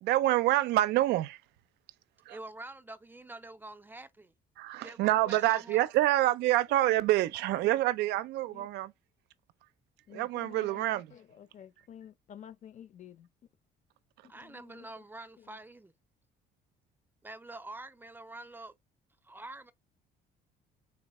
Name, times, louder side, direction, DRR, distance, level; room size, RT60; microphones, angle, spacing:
voice 1, 0.0-1.4 2.3-2.4 4.6-8.9 10.1-11.1, right 15 dB, 80° right, 0.4 m, -27 dB
voice 2, 2.3-4.3 4.8-5.9 14.3-15.9 17.2-18.7 19.2-19.7, right 2 dB, 10° right, 0.4 m, -46 dB
voice 3, 10.1-13.3 14.2-14.9, left 9 dB, 45° left, 0.6 m, -51 dB
4.0 x 3.1 x 3.0 m
cardioid pair, 110°, 17 cm